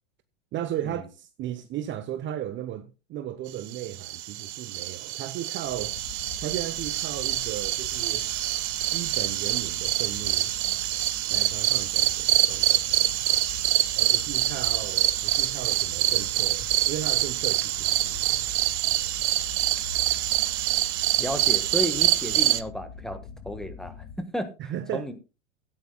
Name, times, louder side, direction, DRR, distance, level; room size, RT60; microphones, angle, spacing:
voice 1, 0.5-6.0 6.4-8.3 8.9-10.5 11.3-13.1 14.0-18.4 24.7-25.1, right 11 dB, 30° right, 0.8 m, -35 dB
sound 1, 3.7-22.6, right 15 dB, 60° right, 1.0 m, -26 dB
sound 2, 5.7-24.2, left 5 dB, 55° left, 2.3 m, -44 dB
voice 2, 21.2-23.2 23.4-25.1, equal, ahead, 1.4 m, -33 dB
17.0 x 9.4 x 2.3 m
hypercardioid pair, 110°, 37 cm